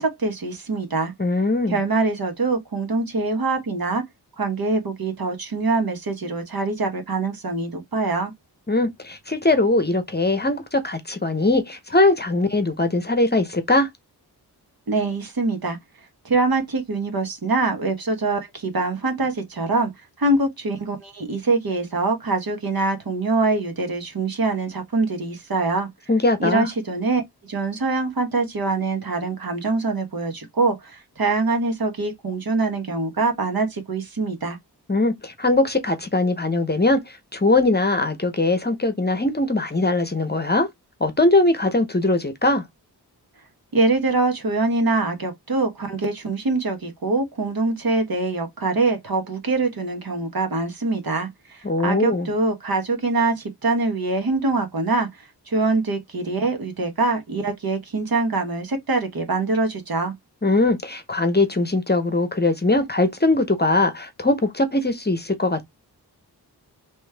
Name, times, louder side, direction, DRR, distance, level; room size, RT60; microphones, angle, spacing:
voice 1, 0.0-1.1 1.7-4.0 4.4-8.3 14.9-15.8 16.2-19.9 20.2-25.9 26.4-34.6 43.7-55.1 55.5-60.1, right 3 dB, 60° right, 1.3 m, -24 dB
voice 2, 1.2-1.8 8.7-13.9 26.1-26.7 34.9-40.7 41.0-42.6 51.6-52.3 60.4-65.6, left 2 dB, 25° left, 0.8 m, -21 dB
3.1 x 3.1 x 3.3 m
wide cardioid pair, 65°, 40 cm